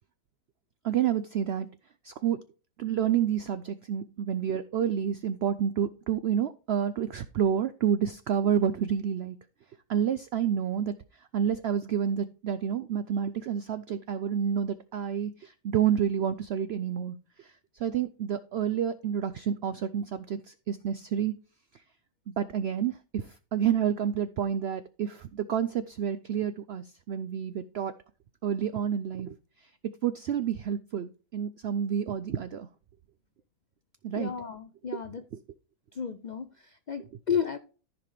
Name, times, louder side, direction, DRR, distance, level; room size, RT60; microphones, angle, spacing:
voice 1, 0.8-1.7 2.0-2.4 2.8-9.4 9.9-10.9 11.3-17.5 17.8-21.3 22.4-27.9 28.4-29.3 30.0-32.7 34.0-34.3, right 9 dB, 80° right, 13 dB, 0.5 m, -29 dB
voice 2, 34.2-35.2 35.9-37.6, left 7 dB, 80° left, 9 dB, 0.4 m, -33 dB
14.0 x 5.0 x 3.3 m, 0.36 s
omnidirectional pair, 1.6 m